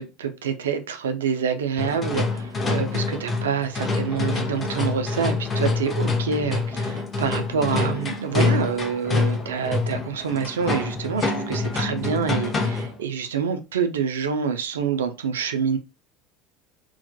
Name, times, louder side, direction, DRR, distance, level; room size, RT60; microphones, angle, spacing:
voice 1, 0.0-15.8, right 6 dB, 75° right, 0.3 m, -27 dB
sound 1, 1.8-13.0, left 3 dB, 25° left, 0.5 m, -26 dB
2.2 x 2.1 x 2.7 m
figure-of-eight pair, 70°, 0 cm